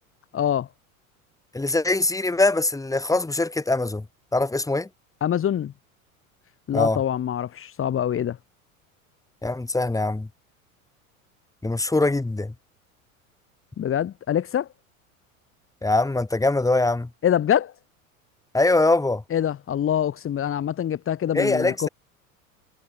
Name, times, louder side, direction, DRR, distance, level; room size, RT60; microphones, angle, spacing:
voice 1, 0.3-0.7 5.2-5.7 6.7-8.4 13.8-14.7 17.2-17.7 19.3-21.9, left 10 dB, 30° left, 3.3 m, -24 dB
voice 2, 1.5-4.0 4.3-4.9 6.7-7.0 9.4-10.3 11.6-12.5 15.8-17.1 18.5-19.2 21.3-21.9, left 2 dB, 10° left, 5.0 m, -22 dB
figure-of-eight pair, 80°, 42 cm